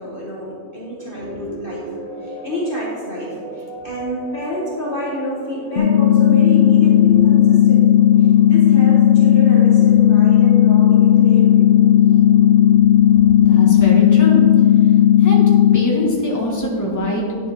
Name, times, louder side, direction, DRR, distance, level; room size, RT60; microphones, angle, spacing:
voice 1, 0.0-7.9 8.2-11.7, equal, 40° left, -5 dB, 1.3 m, -28 dB
sound 1, 1.0-14.7, right 1 dB, 75° right, 2.0 m, -36 dB
sound 2, 5.8-15.8, left 11 dB, 70° left, 0.5 m, -12 dB
voice 2, 13.4-14.4 15.2-15.4 15.7-17.5, left 1 dB, 10° left, -3 dB, 1.4 m, -23 dB
10.0 x 7.0 x 3.5 m, 2.1 s
omnidirectional pair, 1.6 m